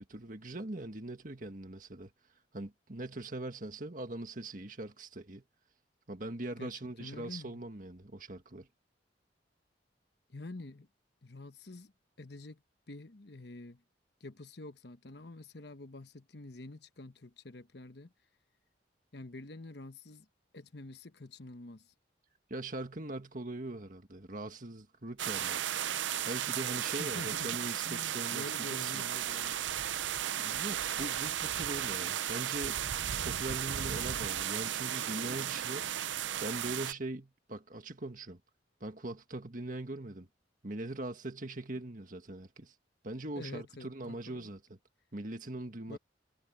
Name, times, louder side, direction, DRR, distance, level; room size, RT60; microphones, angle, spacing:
voice 1, 0.0-2.1 2.5-5.4 6.1-8.7 22.5-25.8 26.2-28.9 30.4-32.8 33.2-35.9 36.4-38.4 38.8-40.3 40.6-42.7 43.0-44.6 45.1-46.0, right 2 dB, 45° right, 1.7 m, -41 dB
voice 2, 7.0-7.6 10.3-10.9 11.2-11.9 12.2-12.6 12.9-13.8 14.2-18.1 19.1-20.3 20.5-21.9 26.9-29.9 43.4-44.5 45.9-46.0, left 2 dB, 60° left, 1.1 m, -47 dB
sound 1, 25.2-36.9, right 10 dB, 80° right, 0.6 m, -35 dB
head